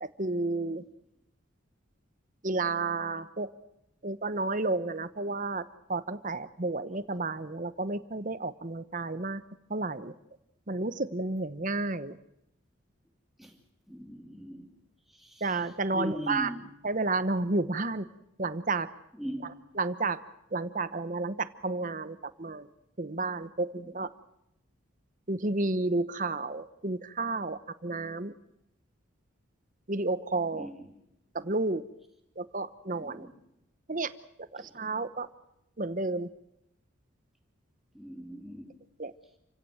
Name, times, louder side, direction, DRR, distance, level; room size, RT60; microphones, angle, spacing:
voice 1, 0.0-0.8 2.4-3.5 4.0-5.6 5.9-9.4 9.7-10.1 10.7-12.2 15.4-16.5 16.8-18.1 18.4-18.9 19.8-20.2 20.5-22.7 23.0-24.1 25.3-28.3 29.9-30.7 31.3-31.8 32.4-33.3 33.9-34.1 34.5-35.3 35.8-36.3 39.0-39.1, right 3 dB, 40° right, 1.0 m, -31 dB
voice 2, 13.9-14.7 15.1-15.5 15.9-16.7 19.1-19.5 30.5-31.0 33.0-33.3 34.6-34.7 37.9-38.8, equal, ahead, 2.8 m, -39 dB
28.5 x 16.5 x 7.9 m
head